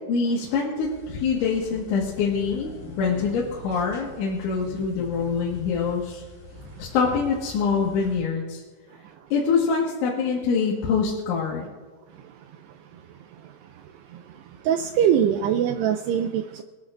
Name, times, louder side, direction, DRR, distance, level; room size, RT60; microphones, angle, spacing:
voice 1, 0.1-6.2 6.8-8.6 9.3-11.7, left 5 dB, 85° left, 4.1 m, -25 dB
sound 1, 0.8-8.2, left 3 dB, 50° left, 4.4 m, -43 dB
voice 2, 14.7-16.6, right 9 dB, 85° right, 2.4 m, -22 dB
26.0 x 11.5 x 2.6 m
omnidirectional pair, 5.3 m